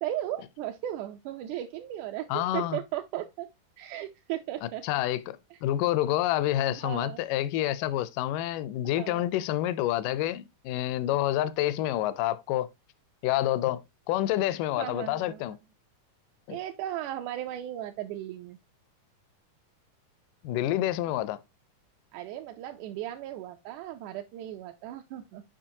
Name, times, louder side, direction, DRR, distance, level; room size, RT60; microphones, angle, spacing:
voice 1, 0.0-3.5 3.8-4.8 5.5-5.6 6.7-7.2 8.8-9.3 14.8-15.4 16.5-18.6 22.1-25.4, right 13 dB, 80° right, 1.9 m, -36 dB
voice 2, 2.3-2.8 4.6-12.7 13.2-13.8 14.1-15.6 16.5-16.6 20.4-21.4, left 13 dB, 80° left, 2.1 m, -28 dB
7.6 x 5.0 x 2.7 m
omnidirectional pair, 3.8 m